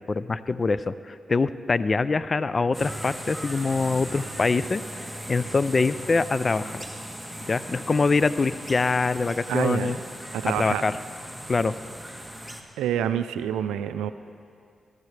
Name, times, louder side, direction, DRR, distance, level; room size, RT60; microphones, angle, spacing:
voice 1, 0.1-6.9 7.5-10.0 10.4-11.0 11.5-11.8, left 4 dB, 45° left, 15 dB, 0.4 m, -24 dB
sound 1, 2.7-12.6, right 1 dB, ahead, 1.4 m, -38 dB
voice 2, 9.5-10.0 10.3-10.8 12.8-14.1, right 10 dB, 90° right, 12 dB, 0.4 m, -27 dB
17.0 x 14.0 x 3.3 m, 2.3 s
supercardioid pair, 40°, 0 cm